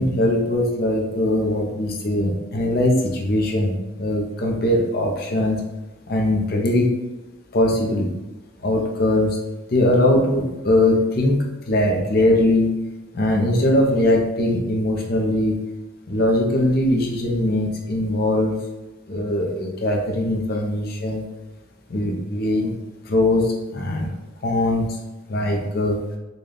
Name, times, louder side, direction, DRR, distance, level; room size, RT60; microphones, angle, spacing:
voice 1, 0.0-5.6 6.1-6.9 7.5-8.1 8.6-9.4 9.7-11.4 11.6-12.7 13.1-15.6 16.1-18.6 19.1-21.3 21.9-22.7 23.1-24.1 24.4-25.0 25.3-26.0, left 1 dB, 50° left, 0 dB, 0.6 m, -21 dB
3.9 x 2.2 x 3.3 m, 1.1 s
head